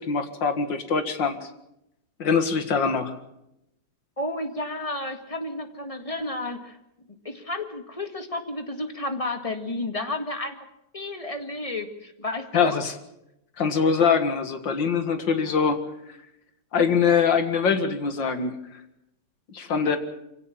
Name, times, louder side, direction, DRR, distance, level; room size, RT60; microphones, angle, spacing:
voice 1, 0.1-1.3 2.2-3.2 12.5-12.9 13.6-15.8 16.7-18.6 19.5-20.0, left 6 dB, 70° left, 9 dB, 2.5 m, -23 dB
voice 2, 4.2-6.8 7.2-10.5 10.9-12.8, left 2 dB, 20° left, 7 dB, 1.8 m, -31 dB
24.5 x 16.5 x 7.3 m, 0.83 s
omnidirectional pair, 2.1 m